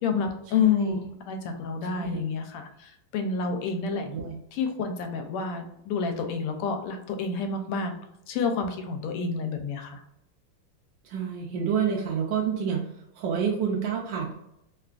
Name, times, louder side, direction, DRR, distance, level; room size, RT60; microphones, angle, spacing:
voice 1, 0.0-4.0 4.5-7.9 8.3-10.0, left 5 dB, 85° left, 5 dB, 1.5 m, -29 dB
voice 2, 0.6-1.0 1.9-2.2 4.1-4.3 11.0-12.8 13.2-14.3, right 7 dB, 75° right, -2 dB, 1.1 m, -28 dB
3.7 x 2.3 x 2.4 m, 0.80 s
omnidirectional pair, 2.4 m